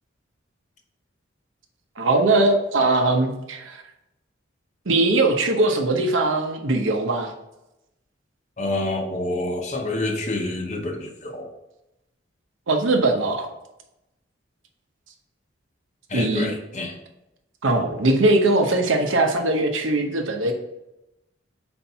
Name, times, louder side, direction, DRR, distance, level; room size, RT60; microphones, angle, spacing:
voice 1, 2.0-3.8 4.9-7.3 12.7-13.5 16.1-16.5 17.6-20.5, right 2 dB, 85° right, 4 dB, 0.9 m, -20 dB
voice 2, 8.6-11.5 16.1-17.0, left 2 dB, 35° left, 3 dB, 0.8 m, -28 dB
4.4 x 4.4 x 5.5 m, 0.91 s
head